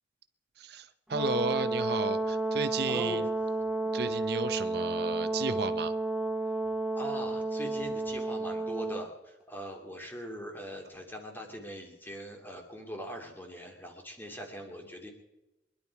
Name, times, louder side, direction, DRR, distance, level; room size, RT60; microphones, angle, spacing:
voice 1, 0.6-3.3 3.9-5.9, right 4 dB, 60° right, 11 dB, 0.7 m, -33 dB
Brass instrument, 1.1-9.1, right 2 dB, 5° right, 0.8 m, -31 dB
voice 2, 2.9-3.2 7.0-15.1, equal, 10° left, 2 dB, 2.6 m, -41 dB
23.5 x 11.5 x 4.7 m, 0.99 s
head